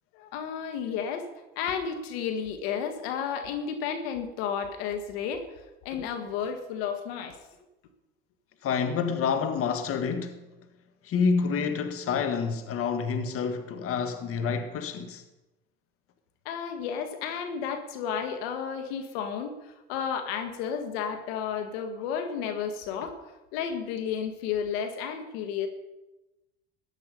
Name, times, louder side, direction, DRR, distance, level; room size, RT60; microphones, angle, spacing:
voice 1, 0.1-1.3 1.6-5.5 5.9-7.4 16.5-23.2 23.5-25.7, left 7 dB, 75° left, 1.7 m, -32 dB
voice 2, 8.6-10.4 11.0-15.2, left 5 dB, 45° left, 1.6 m, -28 dB
14.5 x 11.0 x 5.2 m
hypercardioid pair, 80°, 31 cm